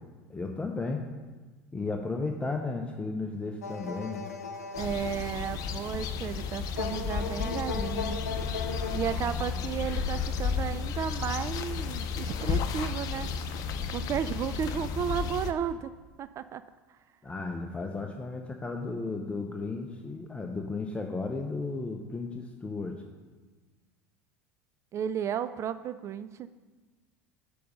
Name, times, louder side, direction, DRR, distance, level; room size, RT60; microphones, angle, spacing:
voice 1, 0.3-1.0 1.7-4.3 17.2-23.0, left 3 dB, 15° left, 3 dB, 0.8 m, -34 dB
sound 1, 3.6-9.2, left 4 dB, 85° left, 0.7 m, -38 dB
sound 2, 4.7-15.5, left 6 dB, 50° left, 0.7 m, -33 dB
voice 2, 4.8-8.2 8.9-13.3 13.9-15.9 16.2-16.6 24.9-26.5, right 8 dB, 35° right, 13 dB, 0.3 m, -33 dB
6.7 x 5.2 x 6.8 m, 1.3 s
hypercardioid pair, 75°, 8 cm